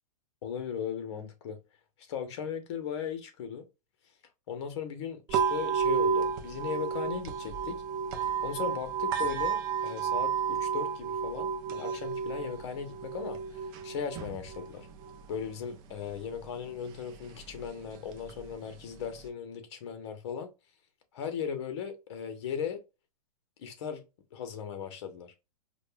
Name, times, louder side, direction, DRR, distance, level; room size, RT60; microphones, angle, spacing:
voice 1, 0.4-1.6 2.1-3.6 4.5-7.8 8.4-14.9 15.3-20.5 21.1-22.8 23.6-24.0 24.3-25.3, left 7 dB, 50° left, 1.0 m, -37 dB
sound 1, 5.3-19.3, right 7 dB, 25° right, 0.5 m, -33 dB
5.0 x 2.3 x 2.3 m
hypercardioid pair, 155°, 19 cm